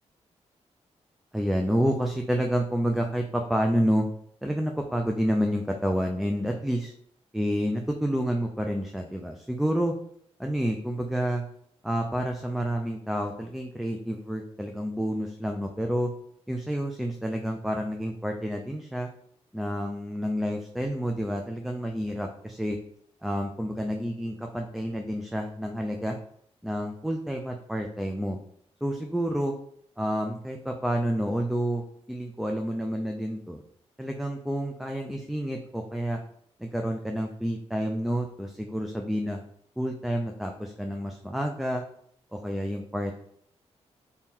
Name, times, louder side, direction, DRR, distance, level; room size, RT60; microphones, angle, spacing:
voice 1, 1.3-4.0 4.4-6.9 7.3-10.0 10.4-11.4 11.8-16.1 16.5-19.1 19.5-22.8 23.2-26.2 26.6-28.4 28.8-29.5 30.0-33.6 34.0-36.2 36.6-39.4 39.8-41.8 42.3-43.1, equal, ahead, 3 dB, 0.3 m, -29 dB
2.8 x 2.7 x 3.6 m, 0.67 s
cardioid pair, 95°, 11 cm